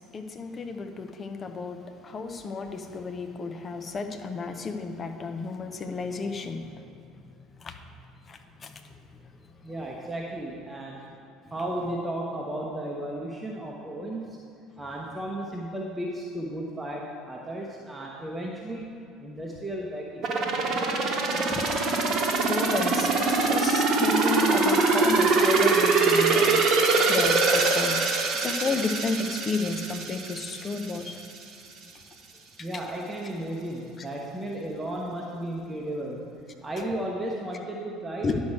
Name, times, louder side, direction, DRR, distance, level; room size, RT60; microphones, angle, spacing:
voice 1, 0.1-6.6 7.6-7.7 8.3-8.7 22.5-26.6 27.1-31.2 38.2-38.4, left 3 dB, 30° left, 6 dB, 0.8 m, -32 dB
voice 2, 9.6-11.0 11.5-14.4 14.8-18.8 19.2-20.3 32.6-36.2 36.6-38.4, right 1 dB, 15° right, -2 dB, 1.0 m, -34 dB
sound 1, 20.2-31.0 31.4-31.5, right 3 dB, 45° right, 1.1 m, -23 dB
10.5 x 6.3 x 4.6 m, 2.6 s
figure-of-eight pair, 60°, 0 cm